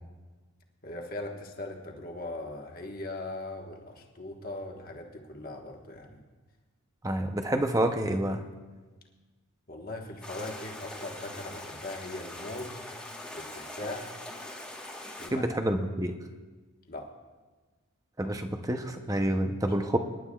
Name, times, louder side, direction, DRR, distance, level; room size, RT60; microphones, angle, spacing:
voice 1, 0.8-6.2 9.7-12.9 13.3-14.2 15.2-15.5 16.9-17.1 19.6-19.7, left 2 dB, 40° left, 1 dB, 1.3 m, -40 dB
voice 2, 7.0-8.4 15.3-16.1 18.2-20.0, right 1 dB, 15° right, 6 dB, 0.6 m, -28 dB
sound 1, 10.2-15.3, left 1 dB, 5° left, 1.2 m, -42 dB
25.5 x 11.0 x 2.3 m, 1.3 s
head